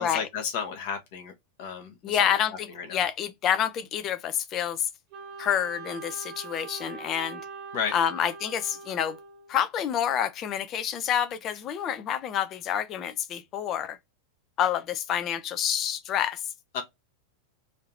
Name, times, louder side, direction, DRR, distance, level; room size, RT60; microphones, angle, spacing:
voice 1, 0.0-1.3 1.6-2.3 2.7-3.0 7.7-7.9 16.7-16.8, left 6 dB, 50° left, 1.0 m, -32 dB
voice 2, 2.0-4.9 5.4-7.4 7.9-9.2 9.5-14.0 14.6-16.4, left 9 dB, 30° left, 0.5 m, -28 dB
Wind instrument woodwind instrument, 5.1-9.7, right 4 dB, 35° right, 1.1 m, -42 dB
3.2 x 2.7 x 3.9 m
figure-of-eight pair, 90°, 0 cm